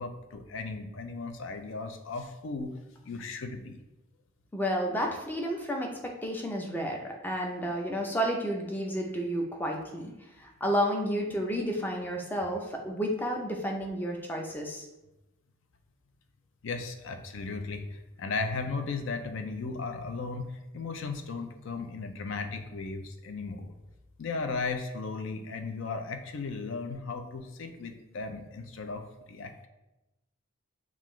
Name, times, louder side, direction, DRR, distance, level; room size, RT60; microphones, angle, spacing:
voice 1, 0.0-2.7 3.0-3.8 16.6-23.7 24.2-29.7, left 4 dB, 60° left, 6 dB, 0.4 m, -36 dB
voice 2, 4.5-10.1 10.4-14.8, equal, 10° left, 1 dB, 0.4 m, -31 dB
5.6 x 2.4 x 3.1 m, 0.99 s
head